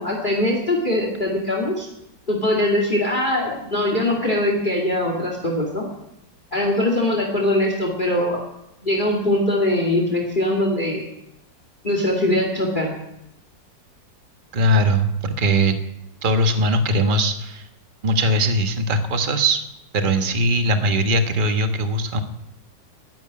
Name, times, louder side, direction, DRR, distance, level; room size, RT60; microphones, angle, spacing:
voice 1, 0.0-1.9 2.3-5.8 6.5-8.4 8.8-11.1 11.8-12.9, left 1 dB, 25° left, 1 dB, 2.4 m, -21 dB
voice 2, 14.5-15.8 16.2-17.6 18.0-19.6 19.9-22.2, right 1 dB, 30° right, 7 dB, 1.4 m, -20 dB
12.5 x 11.5 x 9.6 m, 0.87 s
omnidirectional pair, 2.0 m